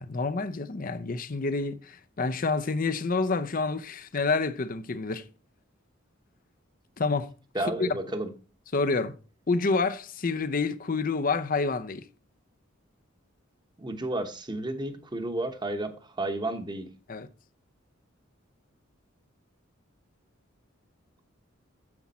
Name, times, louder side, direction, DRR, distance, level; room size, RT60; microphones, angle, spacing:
voice 1, 0.0-5.3 7.0-7.3 7.8-7.9 8.7-9.2 9.5-12.1 17.1-17.3, left 3 dB, 45° left, 0.6 m, -28 dB
voice 2, 7.5-8.3 13.8-16.9, right 1 dB, 20° right, 1.1 m, -32 dB
9.7 x 7.3 x 4.2 m
head